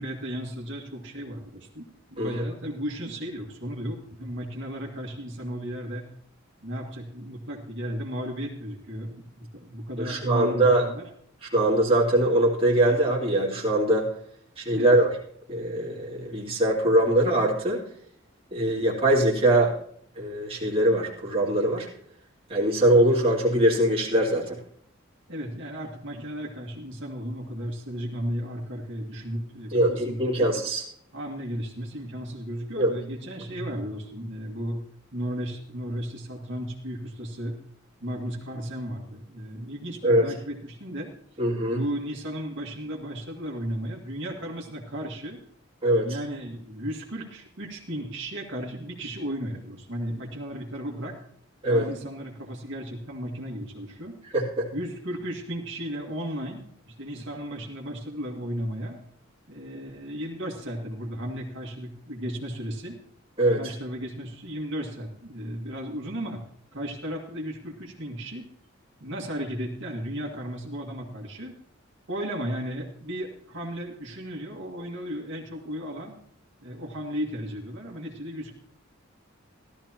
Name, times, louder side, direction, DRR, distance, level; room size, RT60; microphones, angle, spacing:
voice 1, 0.0-1.8 2.1-6.1 6.6-11.1 14.7-14.9 25.3-30.5 31.1-34.8 35.1-37.6 38.0-41.1 41.7-45.4 46.0-51.2 51.7-54.1 54.7-59.0 59.5-63.0 63.6-66.4 66.7-68.4 69.0-71.5 72.1-76.1 76.6-78.5, equal, 60° right, -1 dB, 2.0 m, -35 dB
voice 2, 10.0-10.8 11.5-14.1 14.6-15.1 15.5-17.8 18.5-19.7 20.2-21.9 22.5-24.6 29.7-30.8 32.8-32.9 40.0-40.2 41.4-41.8 45.8-46.1 51.6-51.8 54.3-54.7 63.4-63.6, right 1 dB, 30° right, -3 dB, 2.5 m, -22 dB
16.0 x 13.0 x 3.0 m, 0.63 s
head